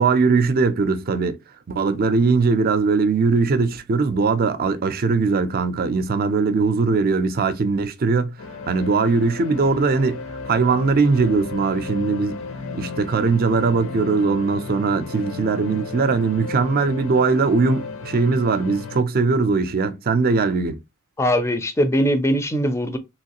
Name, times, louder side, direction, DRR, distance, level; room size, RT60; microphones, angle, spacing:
voice 1, 0.0-1.4 1.7-8.4 8.7-12.4 12.8-20.8, right 4 dB, 45° right, 0.4 m, -20 dB
sound 1, 8.4-19.0, left 4 dB, 70° left, 0.6 m, -34 dB
voice 2, 21.2-23.0, equal, 15° left, 0.4 m, -21 dB
3.1 x 3.0 x 2.8 m
head